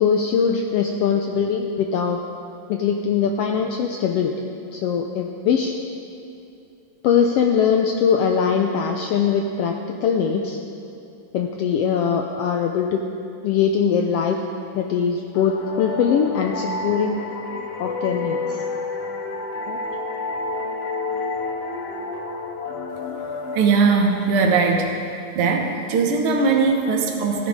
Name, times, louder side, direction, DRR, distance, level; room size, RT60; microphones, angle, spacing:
voice 1, 0.0-2.2 2.7-5.7 7.0-10.6 11.3-13.0 13.4-14.4 14.7-17.2 17.8-18.6 19.7-19.8, left 7 dB, 85° left, 3 dB, 1.4 m, -21 dB
sound 1, 15.4-24.8, left 3 dB, 65° left, 1.8 m, -30 dB
voice 2, 23.5-24.9 25.4-27.5, right 4 dB, 60° right, 2 dB, 1.8 m, -19 dB
15.0 x 13.5 x 3.7 m, 2.6 s
omnidirectional pair, 3.4 m